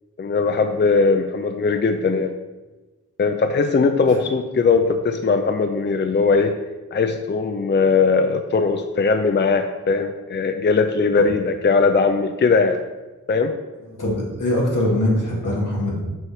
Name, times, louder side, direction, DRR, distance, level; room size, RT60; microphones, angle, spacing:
voice 1, 0.2-2.3 3.2-6.5 6.9-12.8 13.3-13.5, left 4 dB, 35° left, 7 dB, 0.4 m, -19 dB
voice 2, 13.9-16.0, left 1 dB, 80° left, -4 dB, 1.9 m, -22 dB
6.1 x 3.3 x 5.7 m, 1.2 s
cardioid pair, 45°, 31 cm